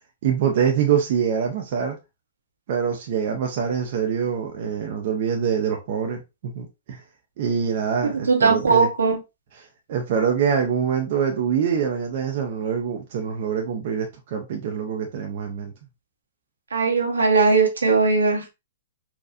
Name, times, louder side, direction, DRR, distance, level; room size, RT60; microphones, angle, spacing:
voice 1, 0.2-2.0 2.7-6.2 6.5-7.0 7.4-8.9 9.9-15.7, right 7 dB, 50° right, 0.6 m, -24 dB
voice 2, 8.0-9.2 16.7-18.4, right 4 dB, 80° right, 1.0 m, -19 dB
4.2 x 2.3 x 2.4 m
hypercardioid pair, 120°, 0 cm